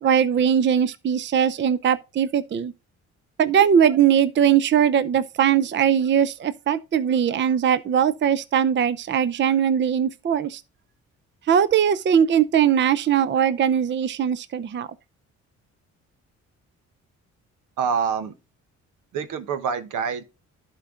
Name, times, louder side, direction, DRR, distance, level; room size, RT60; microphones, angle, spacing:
voice 1, 0.0-2.7 3.4-10.6 11.5-14.9, right 8 dB, 40° right, 0.6 m, -20 dB
voice 2, 17.8-18.3 19.1-20.2, right 6 dB, 85° right, 1.2 m, -26 dB
11.5 x 4.5 x 3.7 m
cardioid pair, 90°, 30 cm